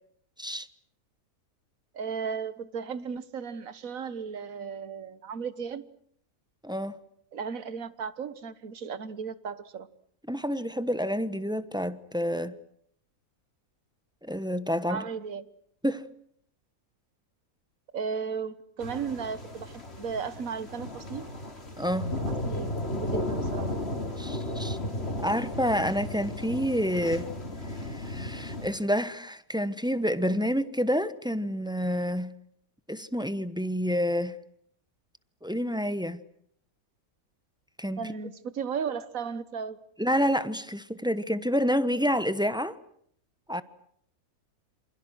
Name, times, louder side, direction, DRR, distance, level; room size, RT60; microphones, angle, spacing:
voice 1, 1.9-5.8 7.3-9.9 14.9-15.5 17.9-21.3 22.1-23.7 38.0-39.8, right 6 dB, 65° right, 1.7 m, -35 dB
voice 2, 10.3-12.5 14.2-15.0 15.8-16.1 21.8-22.1 24.2-24.8 25.2-27.3 27.9-32.3 32.9-34.4 35.4-36.2 37.8-38.0 40.0-42.8 43.5-43.6, equal, 5° right, 0.9 m, -28 dB
sound 1, 18.8-28.7, left 1 dB, 45° left, 3.6 m, -34 dB
28.0 x 27.0 x 6.3 m
omnidirectional pair, 1.5 m